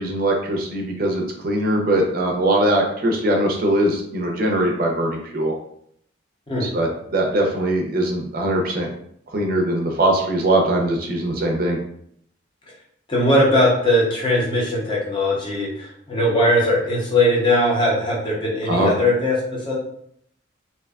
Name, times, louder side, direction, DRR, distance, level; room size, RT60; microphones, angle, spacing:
voice 1, 0.0-5.5 6.6-8.9 9.3-11.8 18.7-18.9, right 1 dB, 50° right, 1 dB, 0.5 m, -21 dB
voice 2, 13.1-19.4 19.7-19.8, left 1 dB, 25° left, -4 dB, 0.7 m, -19 dB
2.6 x 2.2 x 2.3 m, 0.68 s
head